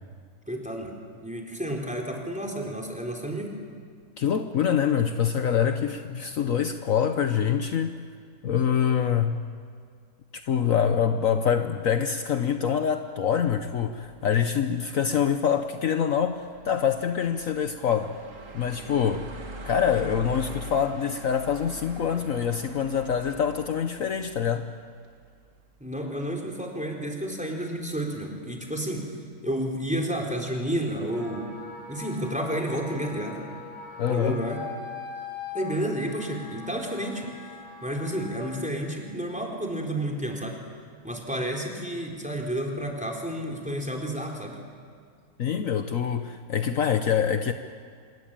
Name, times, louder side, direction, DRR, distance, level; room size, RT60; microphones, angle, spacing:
voice 1, 0.5-0.9 1.2-3.6 25.8-29.1 29.4-31.5 31.9-33.6 34.1-34.6 35.5-37.3 37.8-40.6 41.0-44.6, right 1 dB, 5° right, 1 dB, 4.0 m, -31 dB
voice 2, 4.2-8.0 8.4-9.4 10.3-18.2 18.5-19.3 19.6-24.7 34.0-34.4 45.4-47.5, left 8 dB, 65° left, 8 dB, 1.3 m, -25 dB
sound 1, 13.4-25.5, equal, 55° right, 2.6 m, -44 dB
Wind instrument woodwind instrument, 31.0-38.7, left 4 dB, 30° left, 8.0 m, -41 dB
26.5 x 21.5 x 9.0 m, 2.1 s
omnidirectional pair, 1.6 m